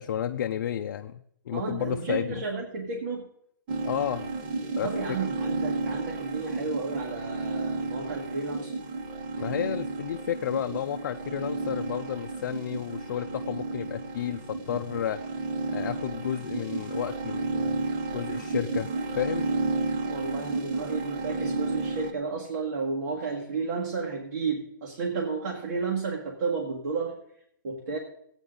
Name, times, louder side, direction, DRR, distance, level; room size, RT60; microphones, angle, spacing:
voice 1, 0.0-2.4 3.9-4.3 4.8-4.9 9.3-15.2 15.7-17.8 18.1-18.9 19.1-19.5, left 10 dB, 55° left, 5 dB, 0.5 m, -32 dB
voice 2, 1.5-3.3 4.8-8.8 20.0-27.2 27.6-28.0, right 4 dB, 60° right, -1 dB, 1.9 m, -32 dB
sound 1, 3.7-22.1, right 3 dB, 30° right, 0.9 m, -32 dB
15.0 x 9.0 x 3.8 m, 0.71 s
hypercardioid pair, 160°, 11 cm